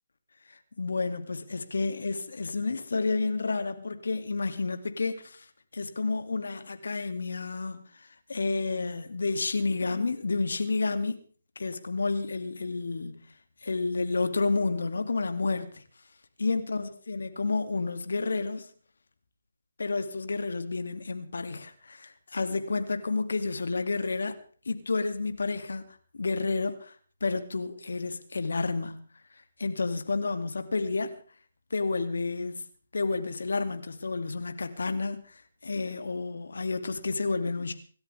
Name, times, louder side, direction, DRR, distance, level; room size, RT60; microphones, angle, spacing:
voice 1, 0.8-5.4 5.7-7.8 8.3-11.2 11.6-13.2 13.6-15.8 16.4-18.7 19.8-24.4 24.7-25.8 26.1-26.9 27.2-29.0 29.6-31.2 31.7-32.6 32.9-35.4 35.6-37.7, left 3 dB, 70° left, 2.4 m, -30 dB
26.0 x 13.0 x 3.5 m
figure-of-eight pair, 150°, 0 cm